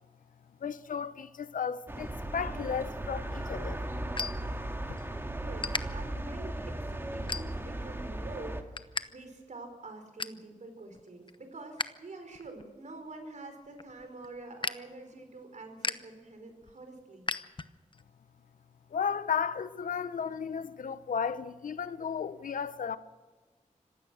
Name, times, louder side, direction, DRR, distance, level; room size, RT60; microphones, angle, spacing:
voice 1, 0.6-3.8 4.9-5.0 18.9-23.0, left 7 dB, 85° left, 0.9 m, -34 dB
sound 1, 1.9-8.6, right 1 dB, 15° right, 2.2 m, -37 dB
sound 2, 3.1-5.1 5.4-5.8 6.4-6.6 7.1-7.8 8.2-9.1 9.3-9.4 9.8-10.4 10.9-11.9 12.2-18.0, left 4 dB, 35° left, 0.9 m, -38 dB
voice 2, 5.0-17.3, right 2 dB, 65° right, 5.0 m, -46 dB
25.5 x 16.0 x 6.4 m
cardioid pair, 70°, 14 cm